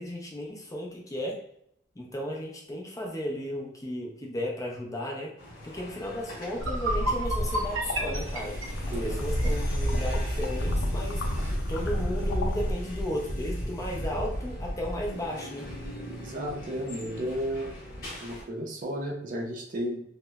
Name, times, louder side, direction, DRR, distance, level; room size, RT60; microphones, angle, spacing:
voice 1, 0.0-1.4 2.0-5.3 5.6-8.6 8.9-11.3 11.7-15.7, left 1 dB, 15° left, -1 dB, 0.4 m, -34 dB
sound 1, 5.4-18.4, equal, 45° left, 0.9 m, -39 dB
sound 2, 6.1-6.2 6.5-9.6, right 1 dB, 85° right, 0.6 m, -32 dB
sound 3, 6.6-12.7, equal, 85° left, 0.4 m, -29 dB
voice 2, 8.8-9.2 16.2-17.7 18.2-20.0, equal, 45° right, 0 dB, 0.5 m, -33 dB
2.8 x 2.0 x 2.2 m, 0.72 s
head